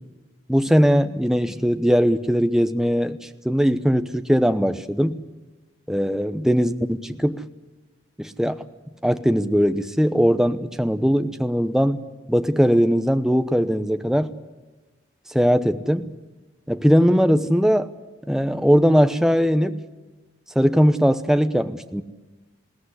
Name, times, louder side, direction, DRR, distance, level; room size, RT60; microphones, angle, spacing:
voice 1, 0.5-5.2 5.9-7.4 8.2-8.6 9.0-12.0 12.3-14.3 15.3-16.1 16.7-17.9 18.3-19.8 20.5-22.0, equal, 5° right, 9 dB, 0.8 m, -20 dB
21.0 x 17.0 x 9.8 m, 1.2 s
head